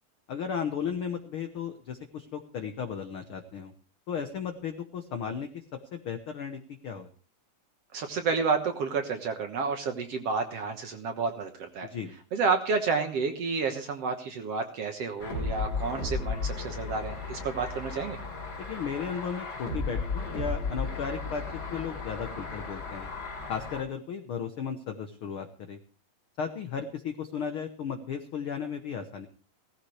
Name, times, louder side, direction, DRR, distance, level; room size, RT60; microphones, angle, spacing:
voice 1, 0.3-3.7 4.1-5.6 5.9-7.1 11.9-12.1 18.6-21.4 21.7-23.1 23.5-25.8 26.4-29.3, left 7 dB, 80° left, 6 dB, 1.2 m, -35 dB
voice 2, 7.9-11.9 12.3-18.2, right 4 dB, 60° right, 5 dB, 1.9 m, -30 dB
sound 1, 15.2-23.8, left 3 dB, 30° left, 3.4 m, -35 dB
17.5 x 14.5 x 3.3 m, 0.40 s
omnidirectional pair, 4.0 m